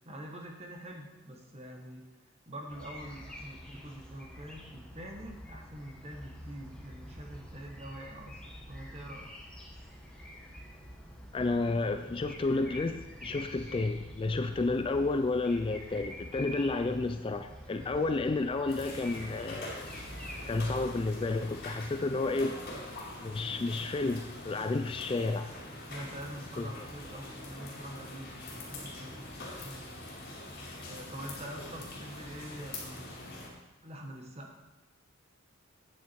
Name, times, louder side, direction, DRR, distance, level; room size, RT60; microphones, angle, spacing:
voice 1, 0.0-2.0 2.5-9.3 16.5-16.6 17.8-18.1 25.9-30.0 30.8-33.2 33.8-34.5, right 1 dB, 30° right, 1 dB, 1.4 m, -45 dB
sound 1, 2.7-21.3, equal, 5° left, 1.3 m, -47 dB
voice 2, 11.3-19.9 20.5-22.6 23.2-25.5 26.6-26.7, left 3 dB, 25° left, 8 dB, 0.3 m, -31 dB
sound 2, 18.7-33.5, left 2 dB, 45° left, 2.4 m, -44 dB
8.9 x 8.2 x 4.6 m, 1.1 s
head